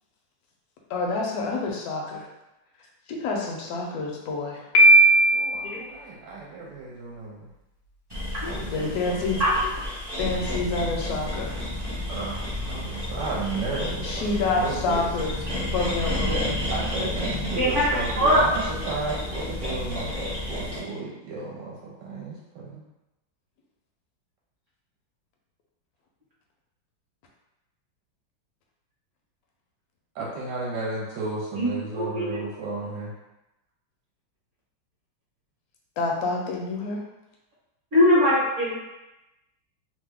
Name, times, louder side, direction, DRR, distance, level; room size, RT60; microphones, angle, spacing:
voice 1, 0.9-2.3 3.1-4.6 8.7-9.4 10.2-11.6 14.0-15.3 15.7-16.5 36.0-37.0, left 3 dB, 70° left, -1 dB, 0.9 m, -28 dB
Piano, 4.7-5.7, right 2 dB, 85° left, 0.7 m, -15 dB
voice 2, 5.3-7.5 8.4-9.5 12.1-15.0 16.1-16.4 16.7-22.8 30.1-33.1, right 3 dB, 70° right, -5 dB, 1.2 m, -33 dB
sound 1, 8.1-20.8, left 1 dB, 30° right, 0.4 m, -31 dB
voice 3, 17.6-18.4 19.6-19.7 31.5-31.7 31.9-32.4 37.9-38.8, left 1 dB, 50° right, -8 dB, 1.0 m, -22 dB
3.1 x 2.1 x 3.4 m, 0.97 s
omnidirectional pair, 2.1 m